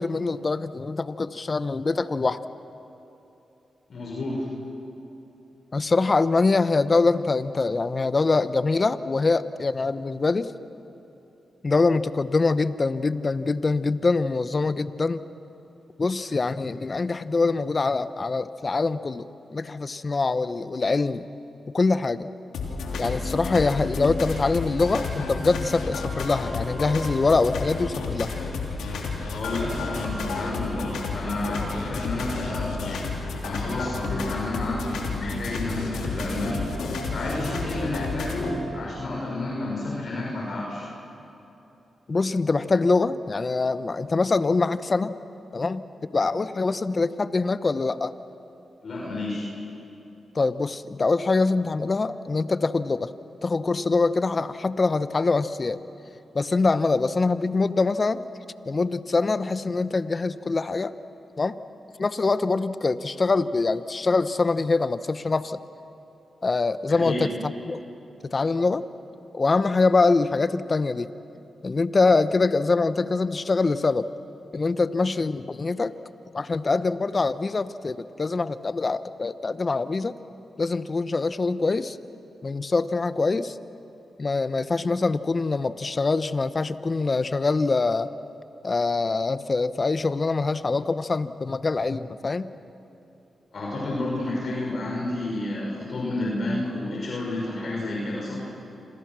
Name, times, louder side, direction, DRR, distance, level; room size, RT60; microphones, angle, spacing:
voice 1, 0.0-2.4 5.7-10.5 11.6-15.2 16.0-21.3 21.7-22.3 23.0-28.3 42.1-45.1 45.5-48.1 50.3-53.1 53.4-55.8 56.3-58.2 58.7-60.9 61.4-61.6 62.0-65.6 66.4-67.8 68.2-68.8 69.3-71.1 71.6-74.1 74.5-75.9 76.3-80.2 80.6-82.0 82.4-83.6 84.2-88.1 88.6-92.5, left 3 dB, 45° left, 13 dB, 1.0 m, -24 dB
voice 2, 3.9-4.5 29.3-36.7 37.1-40.9 48.8-49.5 66.9-67.2 93.5-98.4, left 2 dB, 60° left, -3 dB, 6.1 m, -30 dB
sound 1, 22.5-38.6, left 4 dB, 85° left, 3.4 m, -31 dB
27.0 x 27.0 x 6.2 m, 3.0 s
supercardioid pair, 50°, 0 cm